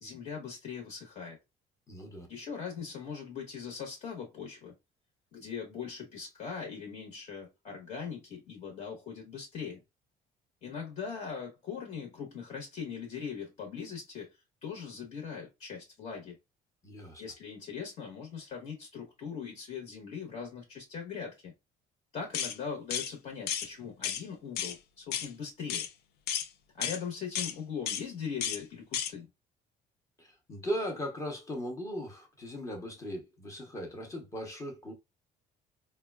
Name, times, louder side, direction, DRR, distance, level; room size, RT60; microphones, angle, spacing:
voice 1, 0.0-1.4 2.3-4.7 5.3-9.8 10.6-14.3 14.6-16.4 17.2-21.5 22.1-25.9 26.7-29.3, left 6 dB, 45° left, 1.1 m, -40 dB
voice 2, 1.9-2.3 16.8-17.2 30.2-34.9, equal, 20° left, 0.8 m, -38 dB
sound 1, 22.3-22.6 22.9-23.1 23.5-23.7 24.0-24.2 24.6-24.8 25.1-25.3 25.7-25.9 26.3-26.5 26.8-27.0 27.4-27.5 27.9-28.0 28.4-28.6 28.9-29.1, left 9 dB, 75° left, 0.5 m, -33 dB
4.9 x 2.2 x 2.3 m
cardioid pair, 175°, 17 cm